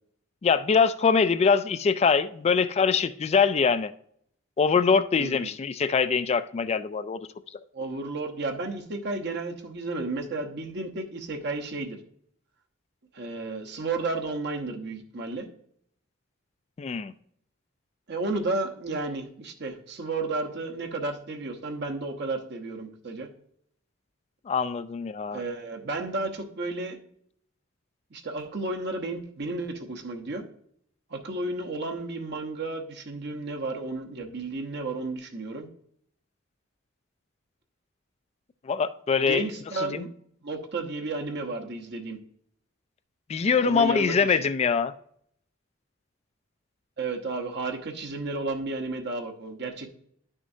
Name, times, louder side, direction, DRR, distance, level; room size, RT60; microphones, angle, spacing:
voice 1, 0.4-3.9 4.6-7.2 16.8-17.1 24.5-25.4 38.7-39.4 39.8-40.0 43.3-44.9, left 5 dB, 30° left, 0.3 m, -23 dB
voice 2, 5.2-5.5 7.7-12.0 13.1-15.5 18.1-23.3 25.3-27.0 28.1-30.4 31.1-35.7 39.2-40.1 40.4-42.2 43.6-44.5 47.0-50.0, right 3 dB, 60° right, 1.0 m, -32 dB
11.0 x 6.3 x 2.7 m
head